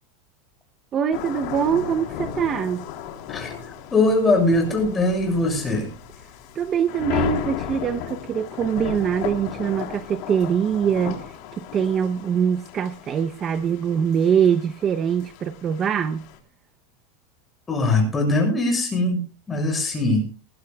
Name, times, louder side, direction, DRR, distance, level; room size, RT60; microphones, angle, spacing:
voice 1, 0.9-2.9 6.6-11.2 11.5-16.3, right 8 dB, 30° right, 9 dB, 0.7 m, -23 dB
sound 1, 1.1-16.4, left 9 dB, 55° left, 3.5 m, -35 dB
voice 2, 3.3-5.9 17.7-20.3, left 2 dB, 15° left, 3 dB, 6.8 m, -21 dB
20.5 x 15.5 x 2.3 m, 0.35 s
supercardioid pair, 140°, 0 cm